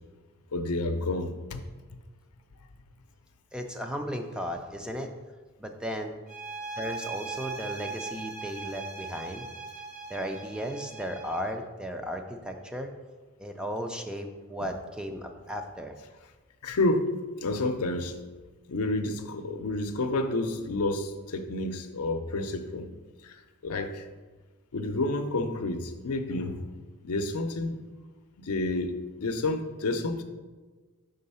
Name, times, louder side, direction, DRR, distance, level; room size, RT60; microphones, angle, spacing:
voice 1, 0.5-1.6 16.6-17.1 17.4-18.2 18.7-22.9 23.2-24.1 24.7-26.7 27.0-27.8 28.4-30.2, left 2 dB, 85° left, 7 dB, 0.6 m, -30 dB
voice 2, 3.5-5.1 5.6-6.1 6.8-9.5 10.1-12.9 13.4-15.9, equal, 5° right, 4 dB, 0.4 m, -35 dB
sound 1, 6.3-11.6, right 4 dB, 30° right, 0.9 m, -39 dB
5.4 x 3.8 x 5.5 m, 1.3 s
head